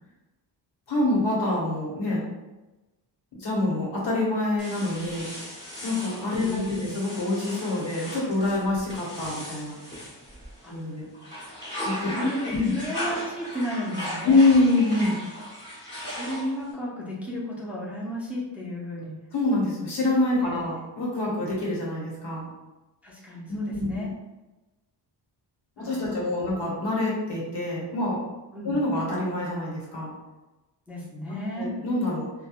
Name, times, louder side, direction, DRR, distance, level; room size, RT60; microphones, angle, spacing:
voice 1, 0.9-2.2 3.3-5.3 5.8-9.8 10.7-11.1 11.8-12.6 14.2-15.2 19.3-22.5 23.5-24.0 25.8-28.2 28.6-30.1 31.6-32.3, left 2 dB, 70° left, -4 dB, 1.1 m, -26 dB
sound 1, 4.6-10.8 11.1-16.7, equal, 25° left, 1.2 m, -37 dB
voice 2, 6.4-6.9 10.6-10.9 12.1-14.4 16.1-19.1 20.4-21.5 23.0-24.1 25.8-26.5 28.5-28.8 30.9-31.7, equal, 5° right, -5 dB, 0.4 m, -34 dB
3.0 x 2.2 x 2.3 m, 1.1 s
wide cardioid pair, 135°, 43 cm